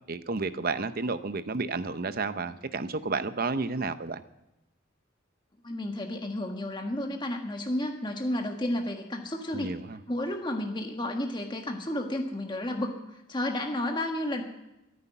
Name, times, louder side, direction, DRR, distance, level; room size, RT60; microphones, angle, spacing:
voice 1, 0.1-4.2 9.5-10.0, right 3 dB, 45° right, 12 dB, 0.7 m, -31 dB
voice 2, 5.6-9.7 10.1-12.9 13.3-14.4, left 1 dB, 25° left, 2 dB, 1.5 m, -31 dB
14.5 x 9.6 x 9.9 m, 0.91 s
head